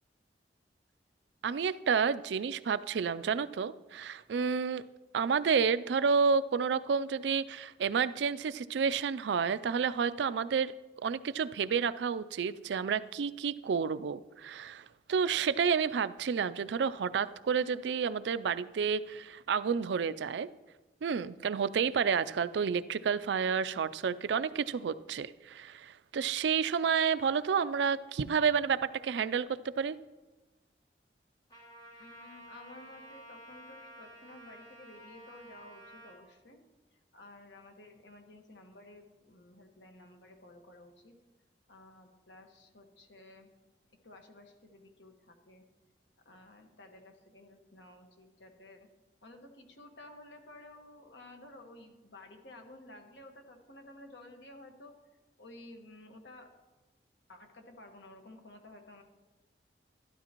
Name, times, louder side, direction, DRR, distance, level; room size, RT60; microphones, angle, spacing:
voice 1, 1.4-4.8 5.1-10.7 11.0-20.5 21.0-30.0, right 6 dB, 75° right, 16 dB, 0.4 m, -30 dB
Trumpet, 31.5-36.2, right 1 dB, 25° left, 3.0 m, -52 dB
voice 2, 32.0-36.6 36.9-41.1 41.7-43.5 44.0-45.6 46.2-48.9 49.2-55.0 55.4-56.5 57.3-59.0, left 2 dB, 85° left, 4 dB, 1.5 m, -53 dB
12.5 x 12.0 x 3.0 m, 1.2 s
head